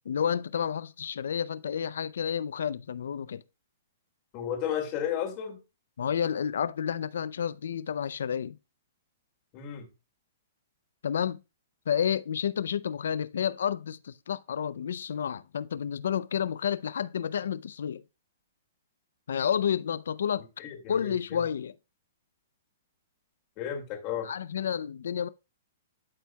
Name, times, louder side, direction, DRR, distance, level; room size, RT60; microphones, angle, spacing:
voice 1, 0.1-3.4 6.0-8.6 11.0-11.4 11.9-18.0 19.3-20.5 20.9-21.7 24.2-25.3, left 8 dB, 80° left, 0.4 m, -30 dB
voice 2, 4.3-5.6 9.5-9.8 20.6-21.1 23.6-24.3, left 9 dB, 30° left, 2.3 m, -33 dB
12.5 x 4.5 x 2.2 m
hypercardioid pair, 155°, 0 cm